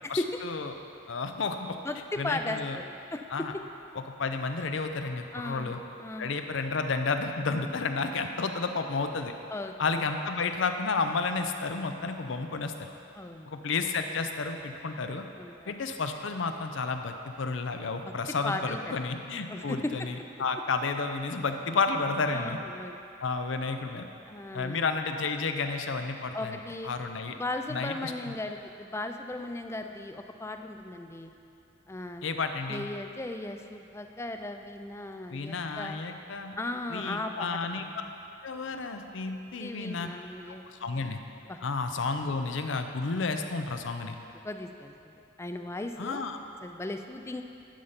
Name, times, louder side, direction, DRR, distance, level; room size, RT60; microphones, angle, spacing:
voice 1, 0.1-0.7 1.1-1.8 2.2-2.8 3.3-3.5 4.2-5.8 6.2-9.3 9.8-12.7 13.5-15.2 15.7-22.6 23.2-24.1 24.5-26.6 26.8-27.3 27.7-28.3 32.2-32.8 35.3-36.5 36.9-37.9 38.4-40.1 40.7-41.2 41.6-44.2 46.0-46.4, left 4 dB, 70° left, 6 dB, 0.6 m, -31 dB
voice 2, 1.8-3.3 5.3-5.7 6.0-6.3 9.5-10.0 13.1-13.5 15.4-15.9 18.0-18.1 18.4-19.2 19.5-20.1 22.3-23.0 24.3-24.8 26.3-26.9 27.4-31.3 31.9-32.2 32.7-36.0 36.6-38.1 39.6-40.6 41.5-41.6 44.0-44.1 44.4-46.3 46.6-47.4, left 2 dB, 15° left, 6 dB, 0.3 m, -37 dB
11.0 x 5.6 x 5.1 m, 2.7 s
head